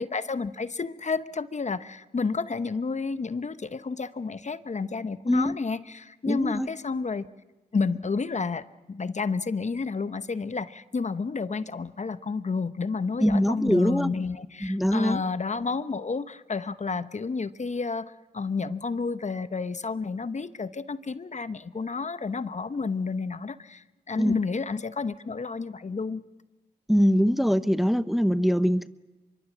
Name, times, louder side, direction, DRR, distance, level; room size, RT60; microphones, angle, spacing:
voice 1, 0.0-7.3 7.7-26.2, left 4 dB, 40° left, 13 dB, 1.0 m, -30 dB
voice 2, 5.3-5.6 6.3-6.7 13.2-14.1 14.6-15.2 24.2-24.4 26.9-28.9, equal, ahead, 14 dB, 0.8 m, -23 dB
24.5 x 23.0 x 7.4 m, 1.1 s
supercardioid pair, 40°, 18 cm